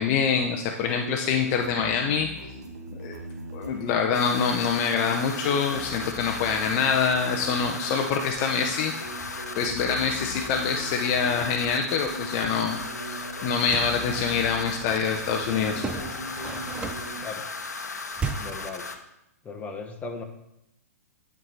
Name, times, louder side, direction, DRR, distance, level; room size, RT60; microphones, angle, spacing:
voice 1, 0.0-2.3 3.0-3.1 3.5-8.9 9.6-12.8 13.1-15.8, left 6 dB, 40° left, 3 dB, 0.7 m, -25 dB
sound 1, 0.8-17.3, right 2 dB, 80° right, 1.3 m, -40 dB
sound 2, 4.1-18.9, left 4 dB, 80° left, 0.9 m, -36 dB
sound 3, 13.5-14.0 15.8-17.2 18.2-18.7, right 4 dB, 15° right, 0.6 m, -34 dB
voice 2, 18.4-18.9 19.4-20.2, left 4 dB, 15° left, 2 dB, 1.2 m, -37 dB
10.5 x 4.8 x 4.1 m, 0.85 s
figure-of-eight pair, 115°, 9 cm